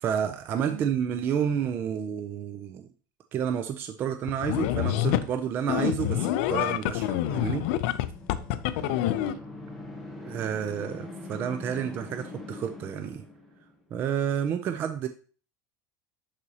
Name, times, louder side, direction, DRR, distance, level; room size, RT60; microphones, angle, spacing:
voice 1, 0.0-2.9 3.3-7.7 10.2-13.2 13.9-15.1, right 8 dB, 20° right, 8 dB, 0.3 m, -30 dB
sound 1, 4.3-5.3 5.7-9.3, left 13 dB, 50° left, 0.4 m, -27 dB
sound 2, 7.2-13.8, left 2 dB, ahead, 0.9 m, -43 dB
voice 2, 8.7-9.4, right 12 dB, 60° right, 9 dB, 1.1 m, -44 dB
11.0 x 4.1 x 2.8 m, 0.39 s
supercardioid pair, 180°, 10 cm